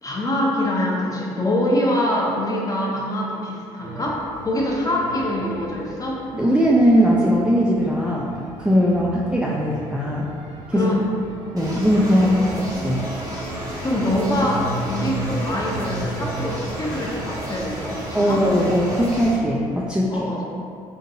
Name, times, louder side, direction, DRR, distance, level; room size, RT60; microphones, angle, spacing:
voice 1, 0.0-6.2 9.0-9.1 10.7-11.0 12.1-12.3 13.8-18.4 20.1-20.4, left 1 dB, 25° left, -3 dB, 0.8 m, -24 dB
sound 1, 3.8-20.0, right 2 dB, 70° right, 0.5 m, -36 dB
voice 2, 6.3-8.3 8.6-10.3 10.7-10.9 11.5-12.3 12.8-13.0 18.1-20.3, equal, 5° right, -4 dB, 0.4 m, -19 dB
sound 2, 11.6-19.4, equal, 25° right, 1.2 m, -33 dB
3.7 x 2.7 x 2.7 m, 2.6 s
hypercardioid pair, 60°, 14 cm